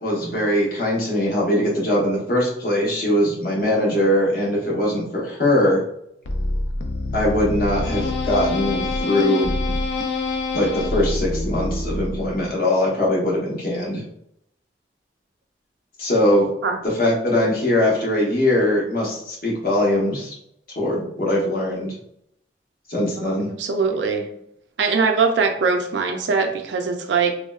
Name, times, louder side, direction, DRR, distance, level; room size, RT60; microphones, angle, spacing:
voice 1, 0.0-5.8 7.1-9.7 10.5-14.0 16.0-16.5 17.0-20.3 20.8-21.9 22.9-23.5, left 1 dB, 50° left, -3 dB, 0.9 m, -21 dB
sound 1, 6.3-12.5, left 2 dB, 70° left, 0.4 m, -26 dB
voice 2, 23.2-24.3 24.8-27.3, right 5 dB, 80° right, 4 dB, 0.4 m, -22 dB
3.4 x 2.1 x 2.3 m, 0.75 s
head